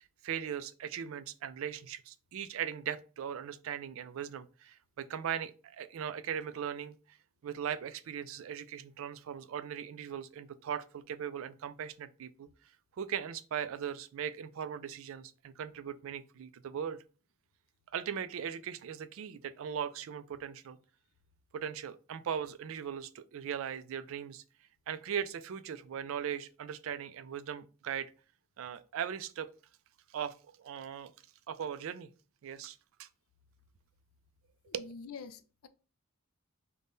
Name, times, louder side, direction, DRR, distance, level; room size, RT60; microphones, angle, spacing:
voice 1, 0.0-7.2 7.4-12.5 13.0-17.0 17.9-20.8 21.5-24.4 24.9-28.1 28.6-29.5 30.1-31.1 31.5-32.1 32.4-33.1 34.7-34.9, right 8 dB, 65° right, 0.3 m, -39 dB
voice 2, 34.7-35.7, left 5 dB, 75° left, 0.4 m, -46 dB
3.5 x 2.1 x 3.8 m
head